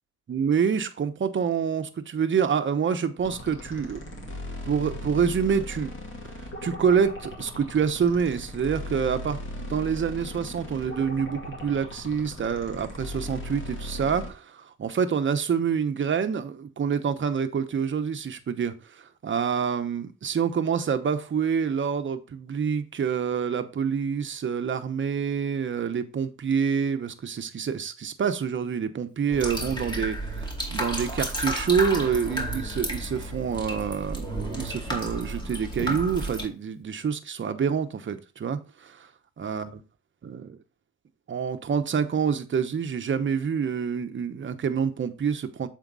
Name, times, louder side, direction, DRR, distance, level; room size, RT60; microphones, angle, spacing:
voice 1, 0.3-4.4 4.6-5.9 6.6-39.1 39.4-39.8 40.2-40.6 41.3-45.7, right 6 dB, 40° right, 1.0 m, -27 dB
sound 1, 3.2-14.3, left 1 dB, 40° left, 2.4 m, -38 dB
sound 2, 29.3-36.4, right 1 dB, 15° left, 2.4 m, -32 dB
7.2 x 4.5 x 4.0 m
cardioid pair, 90°, 30 cm